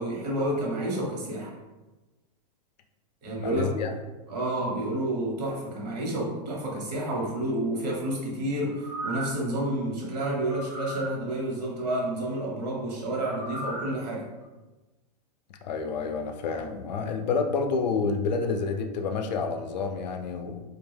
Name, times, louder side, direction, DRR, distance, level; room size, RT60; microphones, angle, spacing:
voice 1, 0.0-1.5 3.2-3.7 4.3-14.2, right 1 dB, 70° right, -2 dB, 1.1 m, -30 dB
voice 2, 3.3-3.9 15.6-20.6, left 4 dB, 80° left, 5 dB, 0.4 m, -29 dB
sound 1, 8.7-9.5 10.5-11.2 13.3-14.0 14.4-14.5, right 1 dB, 45° right, 0.6 m, -36 dB
2.3 x 2.2 x 3.2 m, 1.1 s
supercardioid pair, 145°, 21 cm